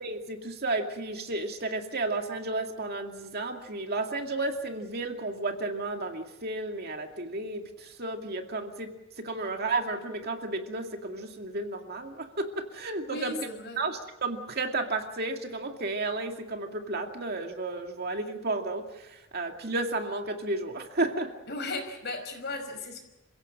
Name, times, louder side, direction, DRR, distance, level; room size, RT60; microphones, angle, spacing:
voice 1, 0.0-13.3 13.8-21.3, right 2 dB, 50° right, 4 dB, 2.4 m, -32 dB
voice 2, 13.0-13.8 21.5-23.0, left 2 dB, 50° left, 5 dB, 5.6 m, -36 dB
28.0 x 16.5 x 7.6 m, 1.0 s
head